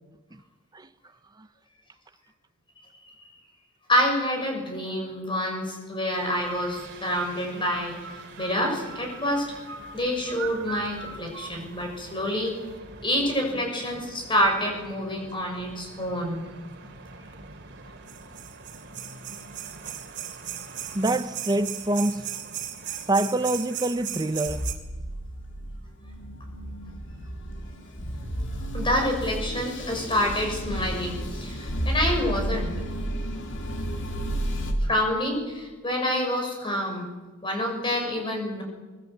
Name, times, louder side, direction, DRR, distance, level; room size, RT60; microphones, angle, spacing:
voice 1, 3.9-8.0 8.4-9.5 9.9-12.6 13.0-16.4 28.7-32.7 34.8-37.1 37.4-38.6, left 1 dB, 25° left, 6.5 m, -27 dB
sound 1, 6.1-24.7, right 7 dB, 55° right, 2.8 m, -39 dB
voice 2, 20.9-22.3 23.1-24.7, right 2 dB, 20° right, 0.8 m, -26 dB
sound 2, 24.5-34.7, equal, 60° left, 3.2 m, -32 dB
24.0 x 21.0 x 8.0 m
head